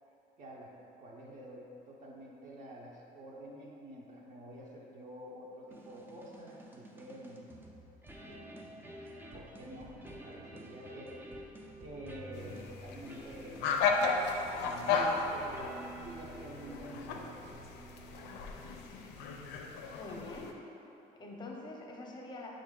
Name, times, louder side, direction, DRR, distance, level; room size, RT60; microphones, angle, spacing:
voice 1, 0.4-0.7 1.0-7.6 8.2-9.0 9.3-17.5, equal, 50° right, -3 dB, 0.7 m, -49 dB
sound 1, 5.7-19.2, right 1 dB, 10° right, 0.4 m, -50 dB
sound 2, 12.3-20.5, left 4 dB, 85° left, 0.4 m, -35 dB
voice 2, 19.9-20.5 21.1-22.5, left 2 dB, 25° left, -1 dB, 0.7 m, -45 dB
5.6 x 2.6 x 3.7 m, 2.9 s
cardioid pair, 110°, 17 cm